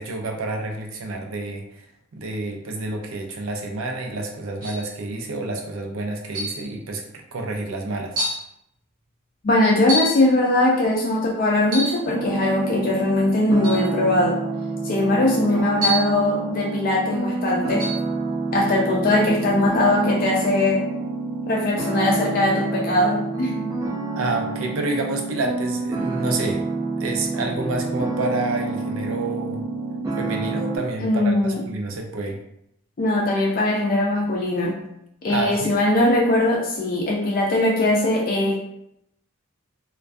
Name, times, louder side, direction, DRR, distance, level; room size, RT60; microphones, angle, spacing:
voice 1, 0.0-1.9 2.1-7.0 7.3-8.2 24.2-26.6 27.0-29.7 30.2-32.4 35.3-35.8, right 2 dB, 85° right, 2 dB, 0.5 m, -28 dB
sound 1, 4.6-4.9 6.3-6.7 7.5-7.6 8.2-8.5 9.9-10.3 11.6-12.0 13.6-13.9 15.8-16.2 17.8-18.0, equal, 40° right, 0.8 m, -26 dB
voice 2, 9.4-14.4 14.8-17.9 18.5-20.9 21.5-23.7 31.0-31.6 33.0-34.8 35.2-38.6, left 1 dB, 45° left, -2 dB, 0.3 m, -20 dB
sound 2, 12.1-30.8, right 3 dB, 15° right, 0.5 m, -28 dB
2.2 x 2.2 x 2.5 m, 0.77 s
head